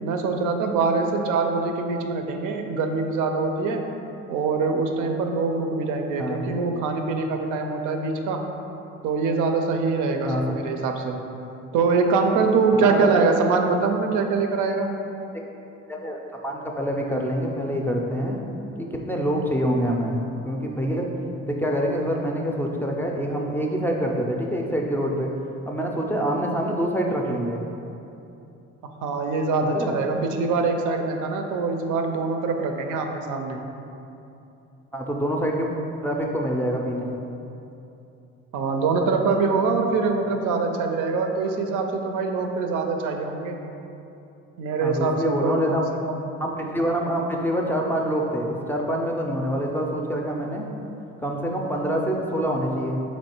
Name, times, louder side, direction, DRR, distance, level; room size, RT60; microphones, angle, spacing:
voice 1, 0.0-3.8 4.3-8.5 9.0-11.2 11.7-14.9 29.0-33.6 38.5-43.6 44.6-46.2, right 4 dB, 90° right, 4 dB, 0.5 m, -24 dB
voice 2, 10.2-10.6 12.8-13.1 15.9-18.4 18.8-20.2 20.5-21.1 21.4-25.3 25.7-27.6 29.6-29.9 34.9-35.7 36.0-37.1 44.8-45.8 46.4-50.7 51.2-53.0, equal, 5° left, -1 dB, 0.3 m, -26 dB
3.1 x 3.0 x 4.3 m, 2.8 s
cardioid pair, 90°, 30 cm